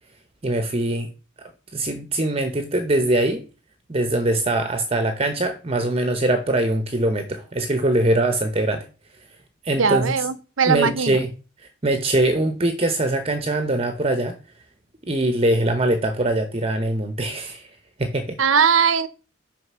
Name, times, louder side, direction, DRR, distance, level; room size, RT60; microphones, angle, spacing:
voice 1, 0.4-1.1 1.7-3.5 3.9-8.9 9.6-10.2 10.7-11.3 11.8-14.4 15.1-17.7 18.0-18.4, right 1 dB, 30° right, 0.9 m, -22 dB
voice 2, 9.8-11.2 18.4-19.1, right 6 dB, 80° right, 0.8 m, -19 dB
6.5 x 5.0 x 6.1 m
head